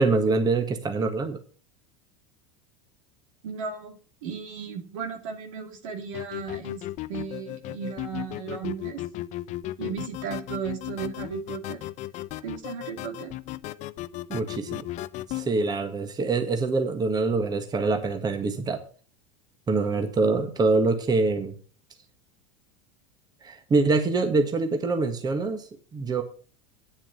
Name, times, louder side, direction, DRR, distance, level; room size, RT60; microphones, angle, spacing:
voice 1, 0.0-1.4 14.3-14.9 15.3-18.8 19.7-21.5 23.4-26.2, right 3 dB, 25° right, 6 dB, 1.7 m, -25 dB
voice 2, 3.4-6.8 7.1-9.0 9.8-11.8 12.4-13.3, right 6 dB, 75° right, 5 dB, 2.6 m, -35 dB
sound 1, 6.1-15.5, left 15 dB, 45° left, 0.7 m, -35 dB
9.1 x 7.3 x 7.0 m, 0.40 s
hypercardioid pair, 100°, 16 cm